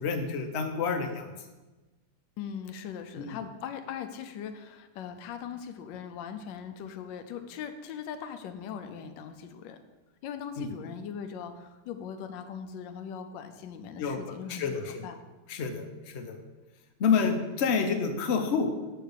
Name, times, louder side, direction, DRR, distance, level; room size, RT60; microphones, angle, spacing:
voice 1, 0.0-1.5 3.2-3.5 10.6-10.7 14.0-14.2 14.5-15.1 15.5-16.4 17.0-18.7, left 5 dB, 50° left, 5 dB, 0.8 m, -29 dB
voice 2, 2.4-9.8 10.2-15.1, left 7 dB, 75° left, 7 dB, 1.3 m, -40 dB
7.5 x 4.6 x 6.7 m, 1.2 s
omnidirectional pair, 2.1 m